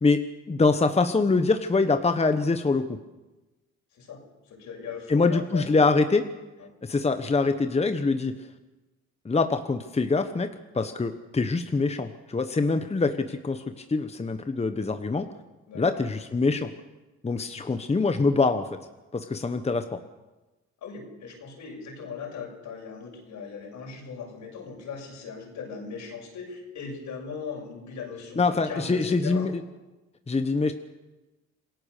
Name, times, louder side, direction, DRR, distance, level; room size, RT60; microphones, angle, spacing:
voice 1, 0.0-3.0 5.1-6.3 6.8-8.3 9.2-10.5 10.7-15.3 15.7-16.7 17.2-18.7 19.1-20.0 28.4-29.5 30.3-30.7, left 3 dB, 20° left, 8 dB, 1.2 m, -24 dB
voice 2, 4.5-5.7 6.6-6.7 15.7-16.0 20.8-29.5, left 5 dB, 75° left, 1 dB, 6.8 m, -39 dB
27.5 x 16.5 x 6.8 m, 1.1 s
cardioid pair, 90°, 30 cm